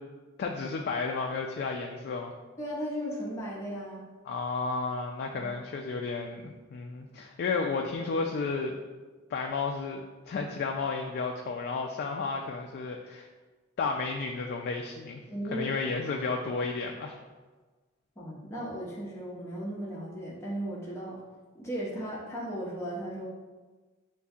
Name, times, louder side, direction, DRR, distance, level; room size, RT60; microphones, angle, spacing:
voice 1, 0.4-2.3 4.3-8.7 9.3-13.3 13.8-15.2 15.5-17.2, left 4 dB, 50° left, 2 dB, 0.3 m, -32 dB
voice 2, 2.6-4.0 5.3-5.5 15.3-15.7 18.2-21.2 21.5-23.3, equal, 15° left, -6 dB, 0.6 m, -36 dB
6.7 x 2.6 x 2.4 m, 1.3 s
head